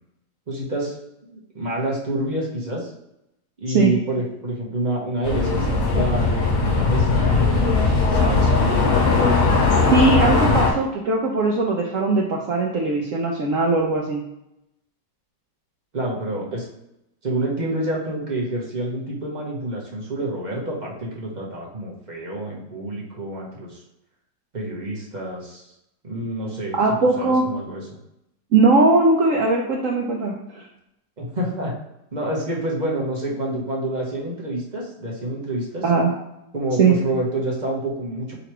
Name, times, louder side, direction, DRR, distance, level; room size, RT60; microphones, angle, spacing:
voice 1, 0.5-0.9 1.3-2.9 3.6-9.9 15.9-16.6 17.2-23.8 24.5-25.6 26.0-26.7 27.2-27.8 31.2-31.7 32.1-35.8 36.5-38.3, right 1 dB, 35° right, -3 dB, 0.7 m, -28 dB
sound 1, 5.2-10.7, left 3 dB, 55° left, 1.2 m, -19 dB
voice 2, 9.9-14.2 26.8-27.4 28.5-30.7 35.8-36.1 36.8-36.9, right 3 dB, 70° right, -1 dB, 0.7 m, -19 dB
3.9 x 2.9 x 4.5 m, 0.85 s
omnidirectional pair, 2.0 m